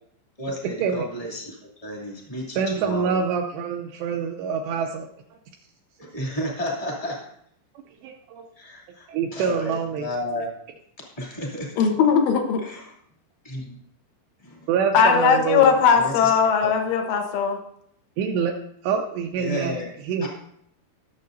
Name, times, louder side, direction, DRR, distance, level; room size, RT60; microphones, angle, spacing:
voice 1, 0.4-3.2 6.0-7.2 8.5-9.0 9.3-10.5 11.2-11.7 12.6-12.9 13.4-13.7 14.4-14.7 15.1-15.2 15.9-16.7 19.3-19.9 20.2-20.3, equal, 15° left, -3 dB, 1.2 m, -32 dB
voice 2, 2.6-5.1 8.0-8.5 9.1-10.1 14.7-15.8 18.2-18.5 18.8-19.8 20.1-20.3, right 6 dB, 80° right, 3 dB, 2.5 m, -26 dB
voice 3, 11.8-12.6 14.9-17.6, left 6 dB, 80° left, 3 dB, 3.7 m, -19 dB
20.5 x 7.5 x 2.7 m, 0.69 s
omnidirectional pair, 5.6 m